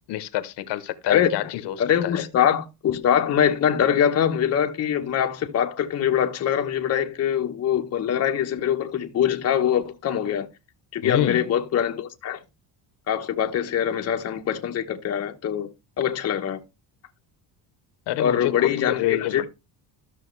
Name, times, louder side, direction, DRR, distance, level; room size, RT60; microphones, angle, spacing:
voice 1, 0.1-1.8 2.0-2.2 11.0-11.4 18.1-19.5, left 13 dB, 65° left, 1.1 m, -27 dB
voice 2, 1.0-1.4 1.8-10.5 10.9-12.4 13.1-15.7 16.0-16.6 18.2-19.5, left 9 dB, 35° left, 1.0 m, -23 dB
13.0 x 6.3 x 3.2 m
cardioid pair, 150°, 44 cm